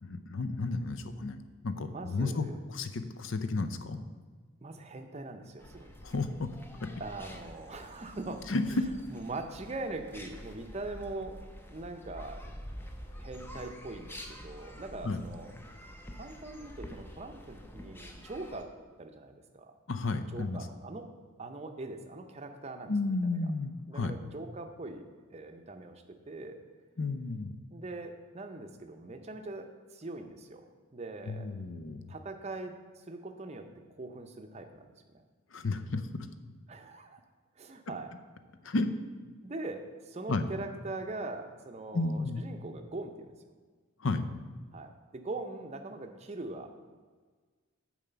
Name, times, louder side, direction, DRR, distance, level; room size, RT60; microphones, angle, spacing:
voice 1, 0.0-4.0 6.0-6.5 6.8-6.9 8.5-8.9 15.0-15.2 19.9-20.6 22.9-24.1 27.0-27.5 31.3-32.1 35.5-36.3 38.6-38.9 40.3-40.4 41.9-42.4 44.0-44.4, left 3 dB, 60° left, 10 dB, 0.6 m, -32 dB
voice 2, 1.9-2.6 4.6-5.9 7.0-8.4 9.1-11.4 11.7-12.5 13.2-18.7 19.0-19.8 20.3-21.1 21.4-23.5 23.9-25.0 25.3-26.6 27.7-31.5 32.1-35.2 36.7-37.2 37.6-38.1 39.4-43.3 44.7-46.7, right 2 dB, 30° right, 5 dB, 0.6 m, -42 dB
sound 1, 5.6-18.6, equal, 10° left, 0.5 m, -47 dB
7.2 x 4.9 x 6.8 m, 1.5 s
head